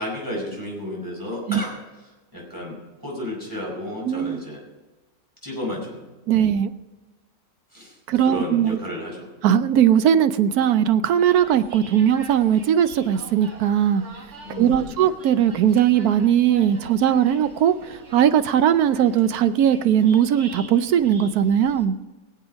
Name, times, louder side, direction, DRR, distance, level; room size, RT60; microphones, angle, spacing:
voice 1, 0.0-1.7 2.3-4.6 5.4-6.4 7.7-8.0 8.2-9.3 14.4-14.9, left 1 dB, 15° right, -3 dB, 5.1 m, -32 dB
voice 2, 4.0-4.4 6.3-6.7 8.1-8.8 9.4-14.0 14.6-22.0, right 9 dB, 85° right, 12 dB, 1.2 m, -19 dB
sound 1, 11.0-21.8, right 2 dB, 50° right, 1.9 m, -44 dB
22.0 x 8.1 x 5.2 m, 1.2 s
omnidirectional pair, 1.6 m